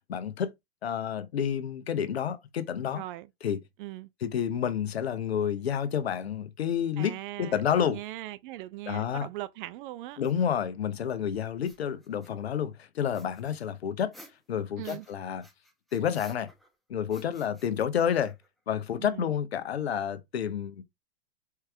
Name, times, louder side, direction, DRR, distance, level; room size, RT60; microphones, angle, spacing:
voice 1, 0.1-0.5 0.8-3.0 3.4-3.6 4.2-8.0 8.9-9.3 10.2-14.1 14.5-15.4 15.9-16.5 16.9-18.3 18.7-20.8, left 8 dB, 90° left, 0.9 m, -29 dB
voice 2, 2.9-3.3 3.8-4.1 7.0-10.2 14.8-15.1 19.0-19.3, right 16 dB, 55° right, 0.6 m, -40 dB
sound 1, 10.2-10.3 11.5-12.5 13.1-15.1 15.4-16.8 17.1-18.6, equal, ahead, 1.3 m, -55 dB
4.6 x 3.3 x 3.4 m
hypercardioid pair, 105°, 30 cm